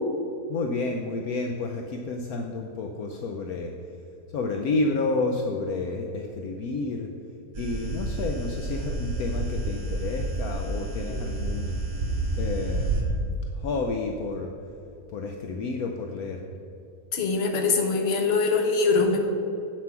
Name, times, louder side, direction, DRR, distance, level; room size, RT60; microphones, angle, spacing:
voice 1, 0.5-3.7 4.3-7.1 7.6-11.8 12.4-13.3 13.6-14.5 15.1-16.4, left 3 dB, 70° left, 3 dB, 1.1 m, -30 dB
sound 1, 7.5-13.0, right 2 dB, 65° right, 2.5 m, -29 dB
voice 2, 17.1-19.3, left 4 dB, 45° left, 3 dB, 1.2 m, -23 dB
8.2 x 7.3 x 5.9 m, 2.8 s
omnidirectional pair, 1.7 m